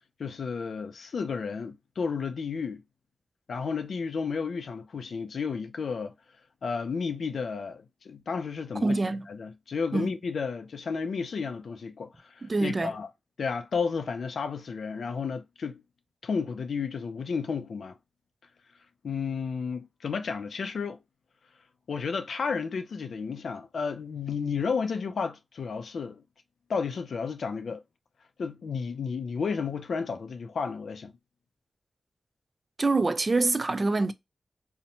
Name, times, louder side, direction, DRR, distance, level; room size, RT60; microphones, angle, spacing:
voice 1, 0.2-2.8 3.5-6.1 6.6-9.0 9.3-13.1 13.4-15.8 16.2-18.0 19.0-21.0 21.9-26.2 26.7-27.8 28.4-31.1, left 5 dB, 80° left, 0.3 m, -32 dB
voice 2, 8.8-9.3 9.9-10.1 12.4-12.9 32.8-34.1, right 3 dB, 35° right, 0.3 m, -25 dB
2.8 x 2.0 x 2.6 m
wide cardioid pair, 80°, 0 cm